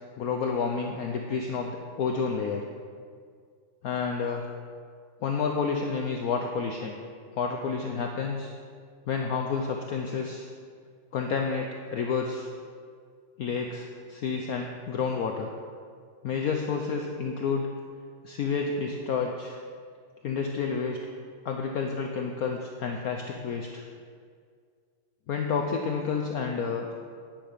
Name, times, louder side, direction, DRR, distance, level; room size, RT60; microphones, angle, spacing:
voice 1, 0.2-2.6 3.8-4.4 5.2-6.9 7.3-8.5 9.1-10.5 11.1-12.5 13.4-15.5 16.2-17.7 18.2-19.6 20.2-21.0 21.4-23.8 25.3-26.9, left 5 dB, 70° left, 2 dB, 0.8 m, -30 dB
10.5 x 9.2 x 5.1 m, 2.1 s
omnidirectional pair, 2.4 m